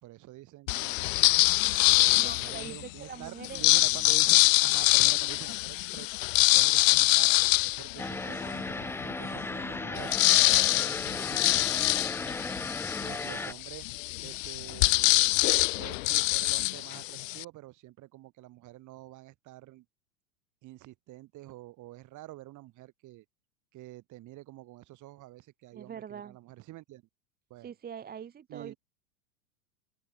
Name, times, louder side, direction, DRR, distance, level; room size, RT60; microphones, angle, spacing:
voice 1, 0.0-1.1 1.8-7.3 7.6-12.2 13.0-13.9 14.2-15.4 15.8-19.8 20.6-23.2 23.7-27.0 27.5-27.8 28.5-28.8, right 17 dB, 40° right, 5.0 m, -47 dB
sound 1, 0.7-2.8 3.4-8.6 9.1-9.2 9.4-17.4, left 21 dB, 60° left, 0.8 m, -25 dB
voice 2, 2.2-3.8 25.7-26.4 27.6-28.7, right 8 dB, 20° right, 1.5 m, -43 dB
sound 2, 8.0-13.5, left 3 dB, 5° left, 0.8 m, -36 dB
open air
hypercardioid pair, 110°, 44 cm